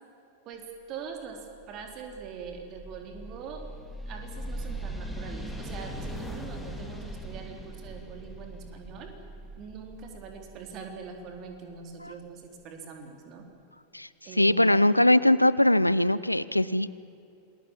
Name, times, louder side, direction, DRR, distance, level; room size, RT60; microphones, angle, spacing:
voice 1, 0.5-1.4 1.7-3.6 4.1-9.1 9.6-13.5 14.2-14.6, right 6 dB, 35° right, 3 dB, 4.0 m, -43 dB
sound 1, 1.3-12.1, right 1 dB, ahead, 2.8 m, -40 dB
voice 2, 14.4-16.9, left 1 dB, 85° left, 18 dB, 0.6 m, -21 dB
27.5 x 21.0 x 7.5 m, 2.8 s
figure-of-eight pair, 90°, 0 cm